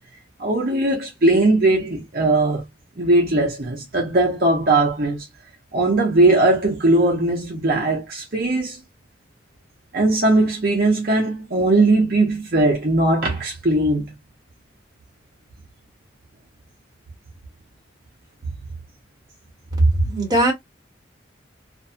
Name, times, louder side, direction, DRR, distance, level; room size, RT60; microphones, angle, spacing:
voice 1, 0.4-2.6 3.0-5.3 5.7-8.8 9.9-14.1, right 2 dB, 50° right, 0.8 m, -19 dB
voice 2, 19.8-20.5, right 2 dB, 20° right, 1.2 m, -18 dB
2.6 x 2.2 x 2.6 m
head